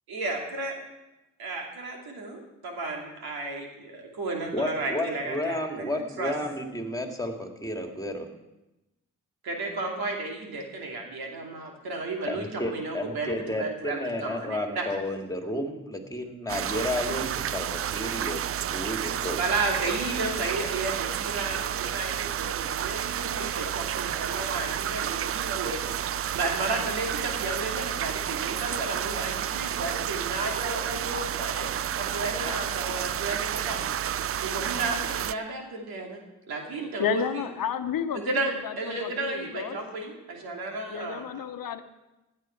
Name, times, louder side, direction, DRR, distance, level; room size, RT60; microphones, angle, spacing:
voice 1, 0.1-0.7 1.4-6.3 9.4-14.8 19.4-25.8 26.3-31.7 31.9-33.8 34.3-36.2 36.5-37.4 38.1-41.2, right 3 dB, 75° right, 1 dB, 2.8 m, -33 dB
voice 2, 4.5-8.3 12.3-18.4 18.7-19.4, left 1 dB, 10° left, 3 dB, 2.4 m, -32 dB
sound 1, 16.5-35.3, right 10 dB, 40° right, 0.4 m, -31 dB
voice 3, 37.0-39.8 40.9-41.8, left 8 dB, 65° left, 10 dB, 1.0 m, -31 dB
16.0 x 9.6 x 4.6 m, 0.99 s
supercardioid pair, 50°, 37 cm